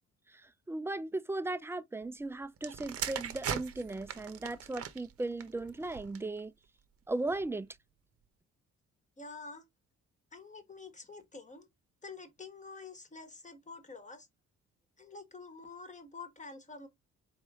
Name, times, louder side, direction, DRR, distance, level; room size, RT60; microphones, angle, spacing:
voice 1, 0.3-6.5 7.1-7.7, right 2 dB, 10° right, 0.3 m, -37 dB
sound 1, 2.6-6.4 7.2-7.5, right 8 dB, 50° right, 0.8 m, -40 dB
voice 2, 9.2-9.6 10.3-11.7 12.0-14.3 15.0-16.9, left 4 dB, 25° left, 1.3 m, -48 dB
4.3 x 3.0 x 3.4 m
cardioid pair, 90°, 30 cm